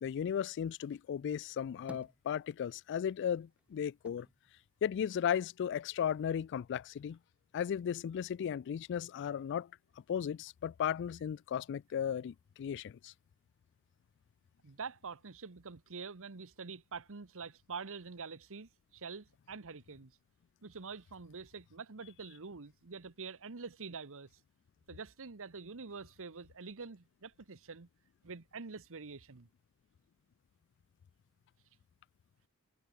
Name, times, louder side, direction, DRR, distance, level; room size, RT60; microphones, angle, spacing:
voice 1, 0.0-4.3 4.8-7.2 7.5-9.7 10.1-13.1, left 8 dB, 55° left, 0.3 m, -35 dB
sound 1, 1.4-2.9 3.2-5.6 6.0-6.9, equal, 5° right, 2.3 m, -56 dB
voice 2, 14.6-20.1 20.6-24.3 24.9-27.9 28.2-29.5, right 5 dB, 65° right, 1.1 m, -46 dB
head